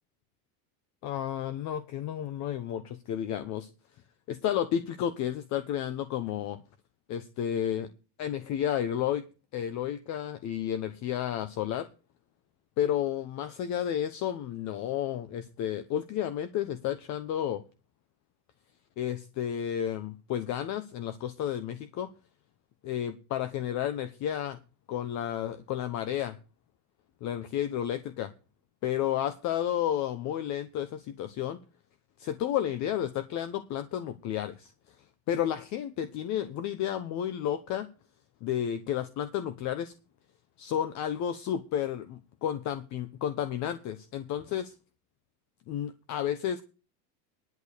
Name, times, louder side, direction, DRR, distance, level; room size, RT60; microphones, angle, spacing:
voice 1, 1.0-3.7 4.3-6.6 7.1-7.9 8.2-9.2 9.5-11.9 12.8-17.6 19.0-22.1 22.8-24.6 24.9-26.4 27.2-28.3 28.8-31.6 32.2-34.7 35.3-37.9 38.4-39.9 40.6-44.7 45.7-46.6, left 10 dB, 35° left, 12 dB, 1.0 m, -32 dB
11.0 x 7.0 x 6.5 m, 0.34 s
supercardioid pair, 155°, 46 cm